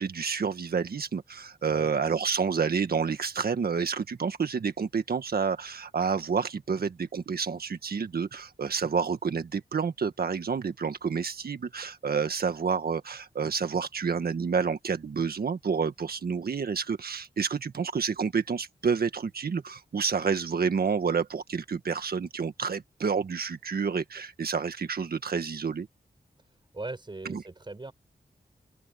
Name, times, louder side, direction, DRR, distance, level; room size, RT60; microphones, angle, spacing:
voice 1, 0.0-25.9 27.2-27.4, right 6 dB, 75° right, 1.7 m, -29 dB
voice 2, 26.7-27.9, right 2 dB, 30° right, 5.4 m, -39 dB
open air
wide cardioid pair, 115°, 16 cm